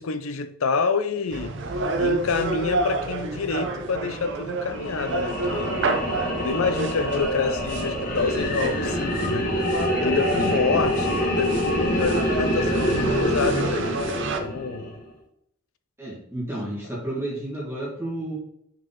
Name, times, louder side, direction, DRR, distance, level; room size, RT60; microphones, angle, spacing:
voice 1, 0.0-1.5 2.0-5.8 6.4-9.5 10.0-14.9, left 4 dB, 70° left, 0.6 m, -28 dB
sound 1, 1.3-14.4, right 3 dB, 55° right, 0.7 m, -29 dB
sound 2, 4.7-15.0, equal, 40° left, 1.3 m, -26 dB
voice 2, 16.0-18.4, right 1 dB, 10° right, 1.7 m, -31 dB
6.1 x 4.8 x 3.7 m
head